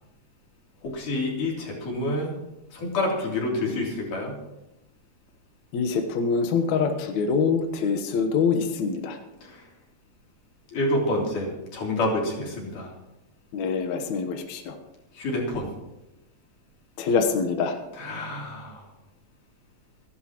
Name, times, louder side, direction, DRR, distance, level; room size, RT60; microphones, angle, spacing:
voice 1, 0.8-2.4 2.7-4.4 9.4-9.6 10.7-12.9 15.1-15.7 17.9-18.8, left 1 dB, 45° left, -2 dB, 4.5 m, -28 dB
voice 2, 5.7-9.2 13.5-14.7 17.0-17.7, left 5 dB, 80° left, 5 dB, 1.6 m, -25 dB
28.5 x 11.5 x 3.1 m, 0.96 s
omnidirectional pair, 5.2 m